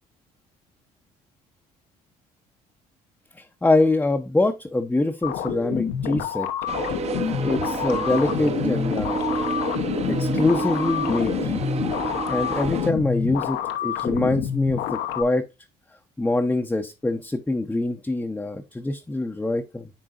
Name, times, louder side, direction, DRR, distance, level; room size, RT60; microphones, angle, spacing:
voice 1, 3.3-6.5 6.9-7.0 7.4-9.2 10.1-11.5 12.3-15.4 16.2-19.9, left 2 dB, 10° left, 0.6 m, -24 dB
sound 1, 5.2-15.2, left 9 dB, 85° left, 0.9 m, -28 dB
sound 2, 6.7-12.9, right 5 dB, 40° right, 0.8 m, -29 dB
10.0 x 3.9 x 2.4 m
cardioid pair, 110°, 17 cm